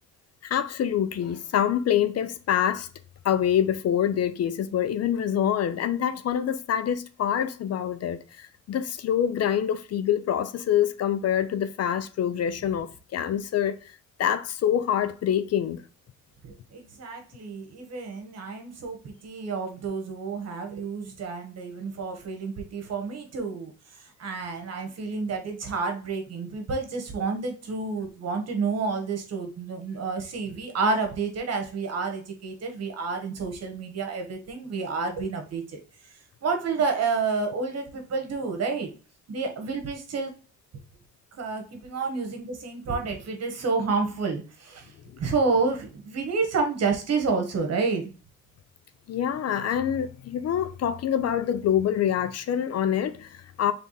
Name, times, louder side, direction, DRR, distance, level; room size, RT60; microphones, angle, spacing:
voice 1, 0.4-2.9 3.2-13.9 14.2-15.8 49.1-53.7, left 9 dB, 55° left, 0.6 m, -26 dB
voice 2, 16.4-35.8 36.4-38.9 39.3-40.3 41.4-48.1, right 4 dB, 55° right, 1.4 m, -29 dB
3.4 x 3.4 x 4.2 m
cardioid pair, 90°, 30 cm